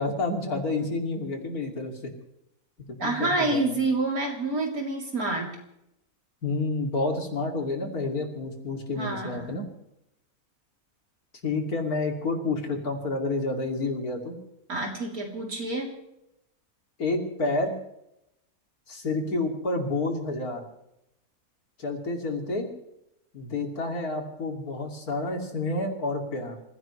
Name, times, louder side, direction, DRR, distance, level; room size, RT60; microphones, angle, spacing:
voice 1, 0.0-2.1 2.9-3.8 6.4-9.7 11.4-14.4 17.0-17.7 18.9-20.6 21.8-22.7 23.3-26.6, left 2 dB, 85° left, 2 dB, 3.2 m, -29 dB
voice 2, 3.0-5.5 9.0-9.6 14.7-15.9, right 2 dB, 80° right, 0 dB, 3.9 m, -28 dB
27.0 x 16.0 x 3.3 m, 0.83 s
omnidirectional pair, 1.5 m